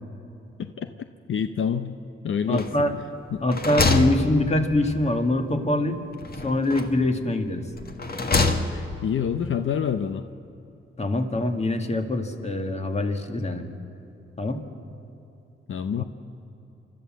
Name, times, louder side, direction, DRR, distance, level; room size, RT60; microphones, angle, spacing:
voice 1, 1.3-2.0 2.2-2.7 3.3-3.4 8.7-10.3 15.7-16.0, left 7 dB, 70° left, 9 dB, 0.7 m, -27 dB
sound 1, 2.5-3.0 3.3-4.9 6.2-7.1 7.8-9.0, left 3 dB, 45° left, 1.7 m, -26 dB
voice 2, 2.5-3.0 3.4-6.0 6.4-7.6 11.0-13.6 14.4-14.6 16.0-16.1, left 1 dB, 30° left, 5 dB, 1.9 m, -24 dB
29.5 x 13.0 x 7.5 m, 2.9 s
cardioid pair, 85°, 21 cm